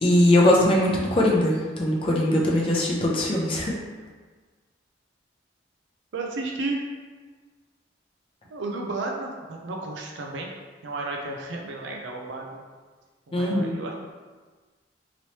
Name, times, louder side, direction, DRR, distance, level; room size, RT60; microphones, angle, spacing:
voice 1, 0.0-3.7 13.3-13.7, left 1 dB, 30° left, -4 dB, 0.5 m, -21 dB
voice 2, 6.1-6.8 8.5-10.5 10.8-12.6 13.3-14.1, right 2 dB, 90° right, 0 dB, 0.5 m, -33 dB
3.0 x 3.0 x 2.8 m, 1.4 s
head